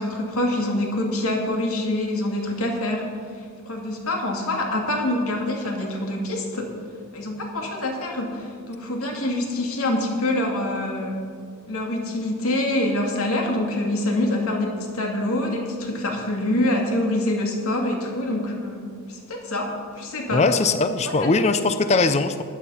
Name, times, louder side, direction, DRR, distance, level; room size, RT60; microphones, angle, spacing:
voice 1, 0.0-3.1 3.7-6.7 7.1-11.2 11.7-20.4 21.1-21.3, left 1 dB, 75° left, 1 dB, 2.5 m, -25 dB
voice 2, 20.3-22.4, left 3 dB, 30° left, 10 dB, 0.5 m, -20 dB
14.5 x 10.0 x 5.7 m, 2.2 s
head